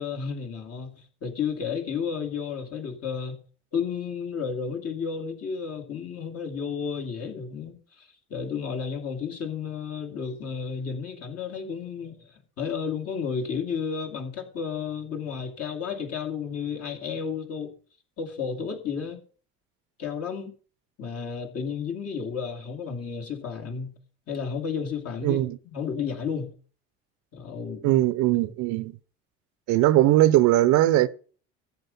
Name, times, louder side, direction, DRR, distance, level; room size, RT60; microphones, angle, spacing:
voice 1, 0.0-3.4 3.7-17.7 18.2-19.2 20.0-20.5 21.0-24.0 24.3-26.5 27.3-28.0, left 6 dB, 50° left, 2.8 m, -32 dB
voice 2, 25.2-25.6 27.8-28.9 29.7-31.1, right 15 dB, 65° right, 0.8 m, -20 dB
13.5 x 7.8 x 5.4 m
hypercardioid pair, 70°, 31 cm